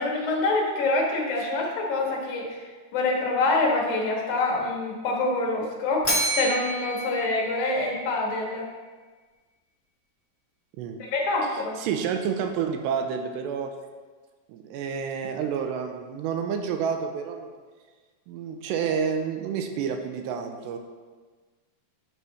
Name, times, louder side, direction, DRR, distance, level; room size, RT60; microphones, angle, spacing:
voice 1, 0.0-8.7 11.0-11.8, left 2 dB, 60° left, -1 dB, 2.4 m, -26 dB
Bell, 6.0-8.3, right 1 dB, 30° left, 0.5 m, -29 dB
voice 2, 11.4-13.7 14.5-17.5 18.3-20.8, right 7 dB, 85° right, 5 dB, 2.8 m, -29 dB
10.0 x 6.2 x 4.1 m, 1.4 s
omnidirectional pair, 5.0 m